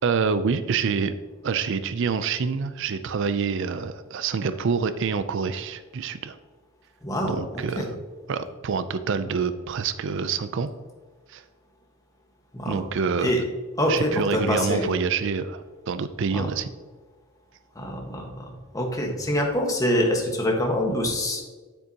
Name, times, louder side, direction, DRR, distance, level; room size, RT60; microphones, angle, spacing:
voice 1, 0.0-1.1 1.4-6.4 7.3-7.9 8.3-10.7 11.3-11.4 12.7-13.3 13.9-16.7, right 5 dB, 65° right, 12 dB, 0.4 m, -27 dB
voice 2, 7.0-7.9 12.5-12.8 13.2-13.4 13.8-14.9 16.3-16.5 17.7-21.5, equal, 15° left, 1 dB, 1.4 m, -25 dB
9.2 x 8.2 x 2.8 m, 1.4 s
head